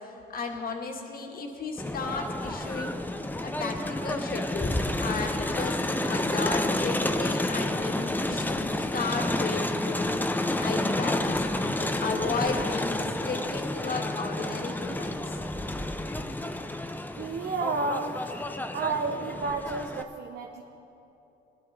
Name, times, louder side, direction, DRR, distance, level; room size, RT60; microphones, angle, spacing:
voice 1, 0.3-3.0 3.4-4.7 5.0-10.2 10.6-15.3, left 4 dB, 45° left, 1 dB, 1.8 m, -34 dB
Crowd, 1.8-20.0, left 1 dB, 10° left, 0.6 m, -30 dB
voice 2, 17.2-18.4 18.7-20.6, right 3 dB, 60° right, 2 dB, 0.9 m, -31 dB
20.5 x 11.5 x 3.4 m, 2.9 s
cardioid pair, 90°, 20 cm